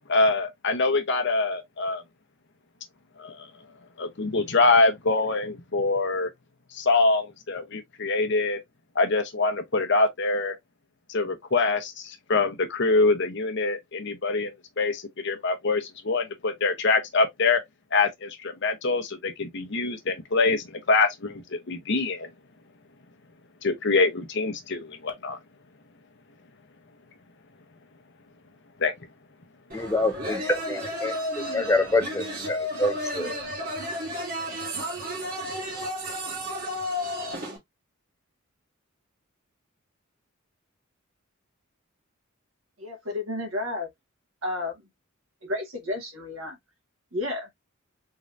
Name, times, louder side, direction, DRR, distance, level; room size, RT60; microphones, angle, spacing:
voice 1, 0.1-2.0 3.2-3.5 4.0-6.3 6.7-8.6 8.9-10.5 11.1-17.6 17.9-22.3 23.6-25.4 28.8-28.9, left 3 dB, 55° left, 0.9 m, -24 dB
voice 2, 29.7-31.1 31.5-33.4, left 2 dB, 15° left, 0.4 m, -26 dB
sound 1, 29.7-37.6, equal, 45° right, 1.7 m, -32 dB
voice 3, 42.8-43.9 44.4-44.8 45.4-46.6 47.1-47.5, left 2 dB, 70° right, 1.7 m, -31 dB
3.8 x 3.2 x 2.5 m
head